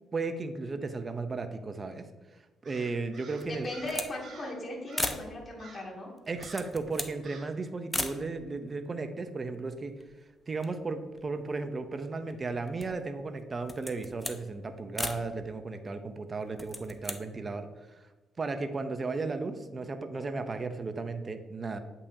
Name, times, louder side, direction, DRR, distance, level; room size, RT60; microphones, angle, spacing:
voice 1, 0.1-2.1 2.6-3.7 6.3-9.9 10.5-17.7 18.4-21.8, right 3 dB, 35° right, 8 dB, 0.6 m, -35 dB
Crow, 2.6-4.6 4.9-5.3 5.6-6.0 6.4-6.8 7.2-7.6, right 4 dB, 50° right, 1.4 m, -51 dB
voice 2, 3.4-6.1, left 1 dB, 30° left, -2 dB, 2.2 m, -38 dB
sound 1, 3.4-4.2 4.5-4.6 4.9-5.3 6.2-7.2 7.9-8.2 9.0-9.1 9.3-10.2 10.5-11.8 12.3-13.1 13.6-14.4 15.0-15.3 16.4-17.2, left 1 dB, 10° left, 0.6 m, -37 dB
8.3 x 5.4 x 2.7 m, 1.2 s
cardioid pair, 90°, 0 cm